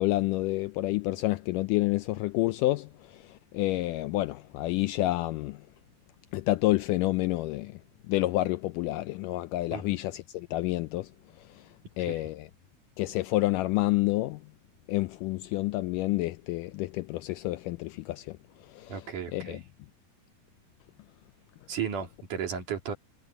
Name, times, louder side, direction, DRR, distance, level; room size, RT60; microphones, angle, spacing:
voice 1, 0.0-3.2 3.5-5.6 6.3-7.8 8.1-11.1 12.0-12.5 13.0-14.4 14.9-18.4 18.7-19.0 19.3-19.6, left 18 dB, 80° left, 1.9 m, -29 dB
voice 2, 12.0-12.3 18.9-19.6 21.7-23.0, right 7 dB, 60° right, 4.4 m, -35 dB
omnidirectional pair, 4.1 m